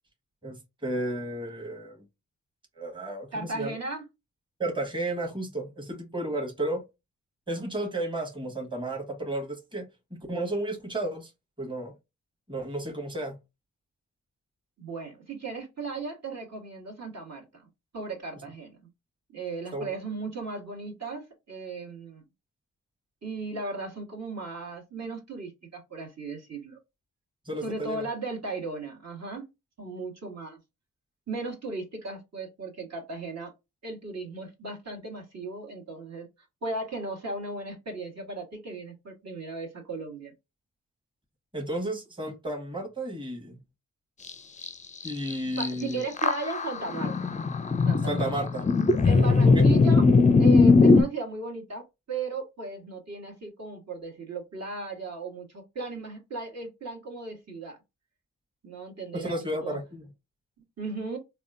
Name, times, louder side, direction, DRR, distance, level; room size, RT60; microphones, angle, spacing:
voice 1, 0.4-2.0 2.8-3.8 4.6-6.8 7.5-11.3 11.6-11.9 12.5-13.4 19.7-19.9 27.4-28.0 41.5-43.6 45.0-46.0 47.8-48.7 49.4-49.7 59.1-60.1, right 1 dB, 15° right, 1.2 m, -33 dB
voice 2, 3.3-4.1 14.8-17.5 17.9-18.9 19.3-22.2 23.2-26.8 27.6-29.5 29.8-30.6 31.3-33.5 33.8-36.3 36.6-40.3 45.6-47.3 47.9-48.3 49.0-50.0 50.4-57.8 58.6-59.8 60.8-61.2, right 3 dB, 50° right, 1.4 m, -36 dB
sound 1, 44.3-44.4 44.6-44.7 45.0-45.7 46.2-51.0, left 4 dB, 20° left, 0.4 m, -19 dB
3.5 x 2.4 x 2.5 m
supercardioid pair, 45°, 34 cm